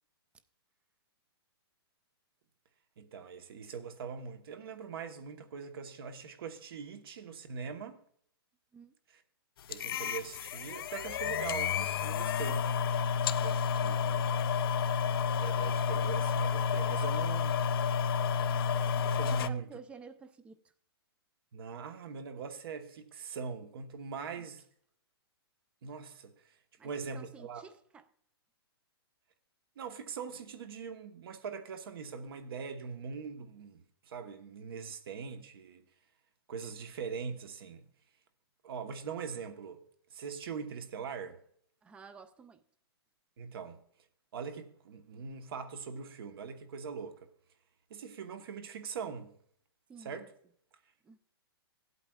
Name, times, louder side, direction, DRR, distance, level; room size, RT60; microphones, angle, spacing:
voice 1, 3.0-8.0 9.1-9.2 9.7-12.7 13.2-14.5 15.4-17.6 19.0-19.7 21.5-24.6 25.8-26.5 26.8-27.6 29.8-35.8 36.5-37.9 38.6-39.8 40.1-41.4 43.4-43.8 44.3-47.3 47.9-49.3 50.0-50.3, right 6 dB, 65° right, 1.1 m, -42 dB
sound 1, 9.7-19.5, left 7 dB, 60° left, 0.4 m, -30 dB
voice 2, 19.3-20.6 24.4-24.5 26.8-28.0 41.8-42.6 49.9-50.3 51.0-51.2, right 5 dB, 10° right, 0.3 m, -51 dB
16.0 x 8.3 x 2.3 m
hypercardioid pair, 150°, 13 cm